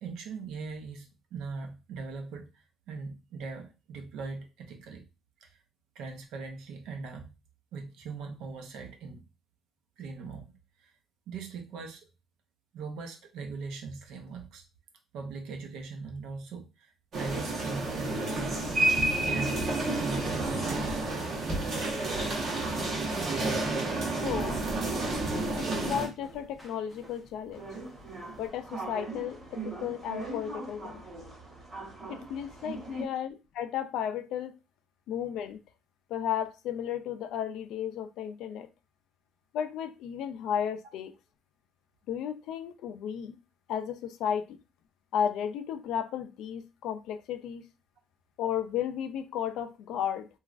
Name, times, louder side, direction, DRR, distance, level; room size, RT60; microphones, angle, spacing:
voice 1, 0.0-5.0 5.4-5.6 5.9-7.3 7.7-9.2 10.0-10.5 10.8-10.9 11.3-12.1 12.7-14.6 15.1-18.6 18.9-21.1 32.8-33.1, right 4 dB, 75° right, 4 dB, 0.7 m, -40 dB
sound 1, 17.1-26.1, right 2 dB, 45° right, 0.9 m, -30 dB
sound 2, 18.3-28.5, right 1 dB, 5° right, 0.6 m, -45 dB
voice 2, 24.2-24.6 25.5-27.7 28.4-31.0 32.1-34.5 35.1-35.6 36.1-38.7 39.5-41.1 42.1-43.4 43.7-44.6 45.1-47.6 48.4-50.3, left 9 dB, 70° left, 9 dB, 0.3 m, -34 dB
sound 3, 27.5-33.1, right 3 dB, 25° right, 1.2 m, -41 dB
3.1 x 2.3 x 2.4 m, 0.28 s
cardioid pair, 170°, 0 cm